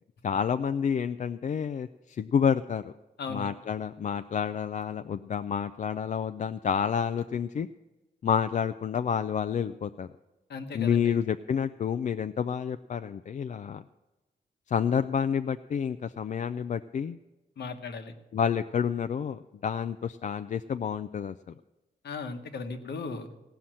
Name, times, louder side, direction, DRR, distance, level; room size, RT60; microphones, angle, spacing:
voice 1, 0.2-2.9 3.3-7.7 8.2-10.1 10.7-13.8 14.7-17.2 18.3-21.3, left 7 dB, 45° left, 10 dB, 0.4 m, -29 dB
voice 2, 10.5-11.2 17.6-18.1 22.0-23.3, left 4 dB, 70° left, 7 dB, 1.2 m, -36 dB
17.0 x 5.7 x 7.6 m, 1.1 s
wide cardioid pair, 115°, 18 cm